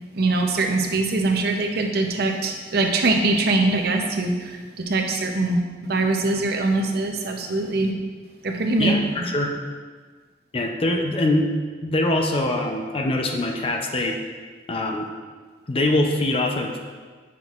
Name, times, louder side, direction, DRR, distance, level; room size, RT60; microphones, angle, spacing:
voice 1, 0.1-7.9 8.4-8.9, right 2 dB, 55° right, 3 dB, 0.6 m, -22 dB
voice 2, 8.8-9.5 10.5-11.5 11.8-14.2 14.7-15.1 15.7-16.8, left 2 dB, 30° left, 2 dB, 0.5 m, -23 dB
7.1 x 5.9 x 2.4 m, 1.5 s
head